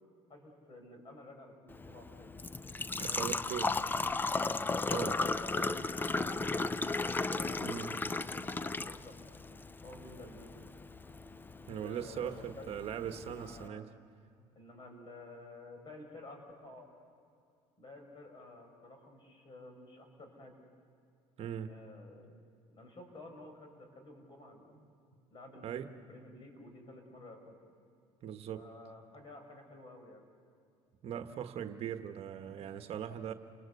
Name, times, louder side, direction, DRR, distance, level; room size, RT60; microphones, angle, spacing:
voice 1, 0.3-2.3 2.9-4.2 4.9-6.6 7.3-8.0 8.3-9.2 9.8-10.5 11.8-12.7 13.1-13.9 14.6-16.9 17.8-20.6 21.6-22.3 22.7-24.8 25.3-27.6 28.5-30.2 32.5-32.7, left 2 dB, 40° left, 4 dB, 6.0 m, -52 dB
Engine / Trickle dribble / Fill (with liquid), 1.7-13.7, left 3 dB, 15° left, 0.5 m, -36 dB
voice 2, 3.0-3.7 4.9-5.2 7.6-7.9 11.7-13.9 21.4-21.7 25.6-25.9 28.2-28.7 31.0-33.3, right 9 dB, 50° right, 8 dB, 1.3 m, -39 dB
30.0 x 20.0 x 8.2 m, 2.4 s
cardioid pair, 105°, 13 cm